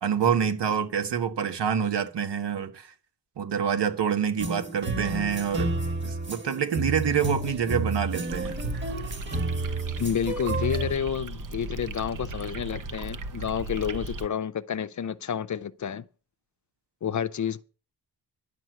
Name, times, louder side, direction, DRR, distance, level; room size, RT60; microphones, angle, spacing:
voice 1, 0.0-2.9 3.4-5.7 6.0-8.6, right 8 dB, 80° right, 1.6 m, -27 dB
sound 1, 4.4-10.9, right 2 dB, 25° right, 1.6 m, -31 dB
sound 2, 8.2-14.3, right 2 dB, 50° right, 1.0 m, -37 dB
voice 2, 10.0-16.0 17.0-17.6, left 8 dB, 45° left, 0.6 m, -30 dB
11.0 x 6.1 x 7.9 m
wide cardioid pair, 140°, 41 cm